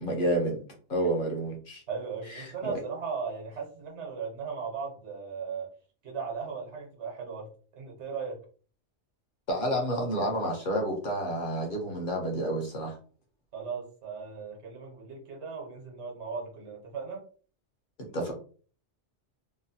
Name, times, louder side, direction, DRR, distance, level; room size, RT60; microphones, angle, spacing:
voice 1, 0.0-0.6 0.9-1.8 2.3-2.7 9.5-13.0 18.0-18.3, right 1 dB, 50° left, 1 dB, 0.9 m, -30 dB
voice 2, 1.9-5.7 6.0-8.4 13.5-17.2, right 5 dB, 75° right, 0 dB, 1.2 m, -37 dB
3.0 x 2.1 x 2.7 m, 0.41 s
omnidirectional pair, 1.2 m